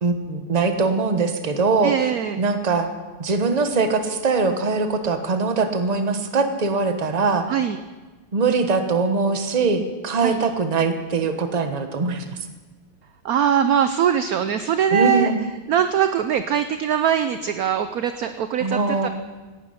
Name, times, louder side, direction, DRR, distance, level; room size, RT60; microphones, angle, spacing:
voice 1, 0.0-1.9 2.4-2.9 3.2-7.5 8.3-12.3 14.9-15.4 18.6-19.1, right 4 dB, 25° right, 7 dB, 0.9 m, -22 dB
voice 2, 1.8-2.4 7.5-7.8 10.2-10.4 13.2-15.3 15.7-19.1, right 9 dB, 70° right, 10 dB, 0.8 m, -21 dB
17.5 x 11.5 x 5.7 m, 1.3 s
omnidirectional pair, 2.2 m